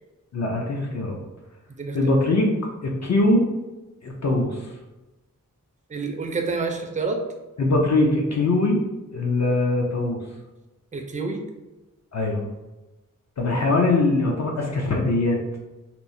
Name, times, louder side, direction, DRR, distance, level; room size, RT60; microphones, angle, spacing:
voice 1, 0.3-1.2 1.9-2.5 2.8-3.4 4.0-4.5 7.6-8.8 9.1-10.2 12.1-12.5 13.4-15.4, left 2 dB, 55° left, 0 dB, 0.5 m, -21 dB
voice 2, 1.8-2.2 5.9-7.2 10.9-11.4, right 4 dB, 25° right, 4 dB, 0.3 m, -28 dB
2.9 x 2.0 x 2.6 m, 1.1 s
wide cardioid pair, 75°, 33 cm